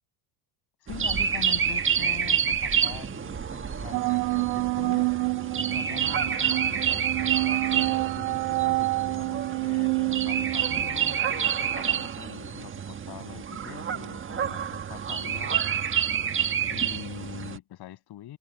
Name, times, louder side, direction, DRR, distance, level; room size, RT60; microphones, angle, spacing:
voice 1, 0.8-5.1 5.7-15.6 16.7-18.4, left 13 dB, 50° left, 7.2 m, -43 dB
sound 1, 0.9-17.6, right 8 dB, 25° right, 1.5 m, -28 dB
sound 2, 3.9-12.1, right 28 dB, 90° right, 0.9 m, -28 dB
open air
supercardioid pair, 110°, 49 cm